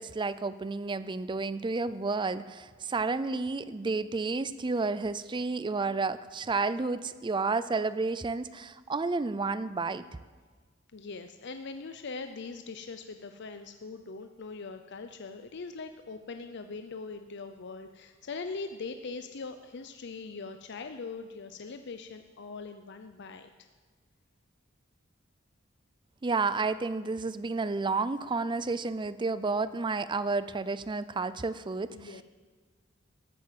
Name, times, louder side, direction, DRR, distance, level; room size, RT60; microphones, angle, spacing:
voice 1, 0.0-10.0 26.2-32.1, right 3 dB, 25° right, 15 dB, 0.4 m, -31 dB
voice 2, 10.9-23.5 31.9-32.2, left 4 dB, 60° left, 8 dB, 0.6 m, -41 dB
13.5 x 8.9 x 7.5 m, 1.4 s
head